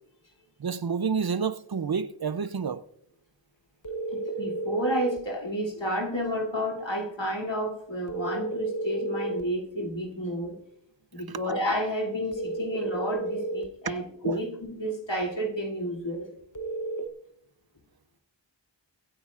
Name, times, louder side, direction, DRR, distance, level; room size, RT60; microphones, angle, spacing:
voice 1, 0.6-2.8 11.3-11.5 13.8-13.9 14.2-14.4, right 6 dB, 55° right, 0.6 m, -29 dB
sound 1, 3.8-5.3 8.1-9.5 12.3-13.7 16.6-17.1, right 3 dB, 45° left, 0.9 m, -32 dB
voice 2, 4.1-10.5 11.1-16.3, equal, 75° left, 2.7 m, -31 dB
24.0 x 9.7 x 2.4 m
wide cardioid pair, 40°, 45 cm